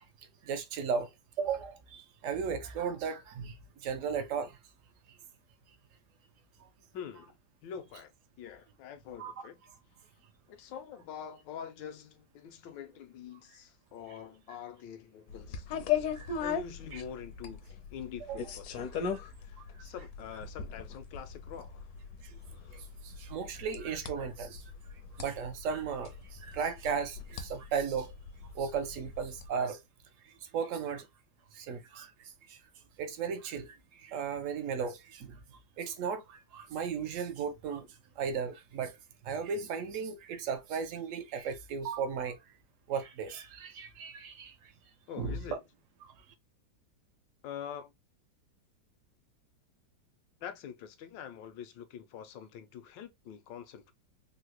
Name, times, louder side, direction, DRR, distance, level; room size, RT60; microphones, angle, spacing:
voice 1, 0.4-1.1 1.4-3.5 3.8-4.6 9.2-9.3 16.2-16.3 16.9-17.0 18.3-18.4 22.2-22.3 23.0-24.6 25.2-28.1 28.5-29.8 30.2-31.1 31.5-32.1 32.5-32.6 33.0-35.4 35.8-37.9 38.2-39.0 39.2-42.4 42.9-44.7 45.2-45.6 46.0-46.1, right 6 dB, 75° right, 0.7 m, -35 dB
voice 2, 6.9-7.3 7.6-8.1 8.4-9.6 10.5-16.0 16.4-21.9 45.1-45.6 47.4-47.9 50.4-53.9, left 8 dB, 85° left, 1.3 m, -45 dB
sound 1, 15.3-29.5, left 7 dB, 70° left, 0.9 m, -39 dB
3.8 x 2.1 x 2.9 m
omnidirectional pair, 2.0 m